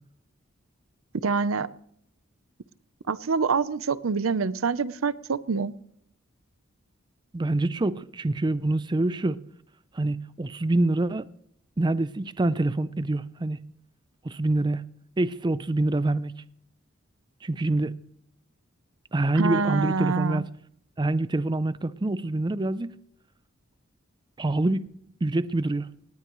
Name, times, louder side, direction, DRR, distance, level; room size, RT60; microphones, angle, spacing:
voice 1, 1.2-1.7 3.1-5.7 19.3-20.4, right 5 dB, 85° right, 0.7 m, -26 dB
voice 2, 7.3-9.4 9.9-11.3 11.8-13.6 14.2-14.8 15.2-16.3 17.4-17.9 19.1-20.5 21.0-22.9 24.4-24.9 25.2-25.9, right 2 dB, 20° right, 0.5 m, -26 dB
19.0 x 18.0 x 3.1 m
head